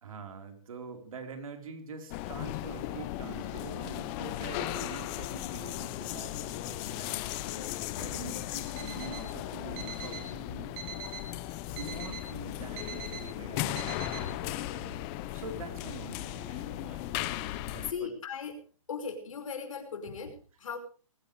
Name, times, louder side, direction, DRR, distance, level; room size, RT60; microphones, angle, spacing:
voice 1, 0.0-7.2 8.0-10.7 11.7-17.3 17.7-18.1, right 4 dB, 70° right, 5 dB, 4.5 m, -45 dB
sound 1, 2.1-17.9, left 14 dB, 25° left, 1.0 m, -37 dB
voice 2, 7.3-7.7 17.9-18.6 18.9-20.8, left 6 dB, 70° left, 5 dB, 5.3 m, -38 dB
Alarm, 8.6-9.3 9.8-10.3 10.8-11.3 11.8-12.3 12.8-13.3 13.8-14.3, right 6 dB, 30° right, 3.1 m, -43 dB
21.5 x 16.5 x 3.4 m, 0.37 s
hypercardioid pair, 160°, 18 cm